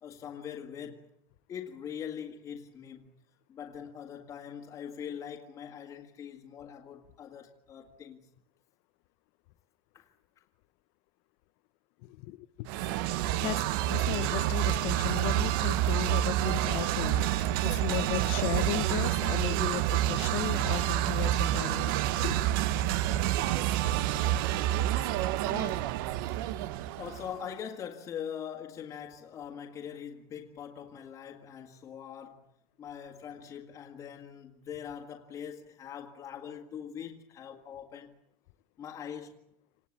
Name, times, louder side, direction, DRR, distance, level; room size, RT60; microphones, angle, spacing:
voice 1, 0.0-1.1 1.5-3.1 3.5-8.2 9.9-10.1 25.5-26.0 27.0-32.5 32.8-38.2 38.8-39.4, left 8 dB, 25° left, 2.0 m, -42 dB
voice 2, 12.0-12.7 13.4-22.4, left 19 dB, 60° left, 1.0 m, -36 dB
sound 1, 12.7-27.4, right 13 dB, 90° right, 1.1 m, -28 dB
27.5 x 19.0 x 8.7 m
cardioid pair, 180°, 11 cm